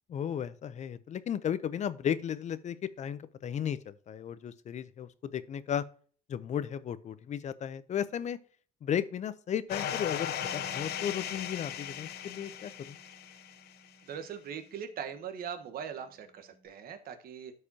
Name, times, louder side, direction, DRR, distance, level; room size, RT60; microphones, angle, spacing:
voice 1, 0.1-5.8 6.3-8.4 8.8-13.0, left 9 dB, 45° left, 16 dB, 0.6 m, -35 dB
sound 1, 9.7-13.7, left 10 dB, 75° left, 0.9 m, -37 dB
Bass guitar, 10.4-16.7, right 3 dB, 30° right, 1.7 m, -56 dB
voice 2, 14.0-17.5, right 8 dB, 60° right, 8 dB, 1.3 m, -41 dB
13.0 x 4.9 x 2.8 m, 0.43 s
cardioid pair, 110°, 17 cm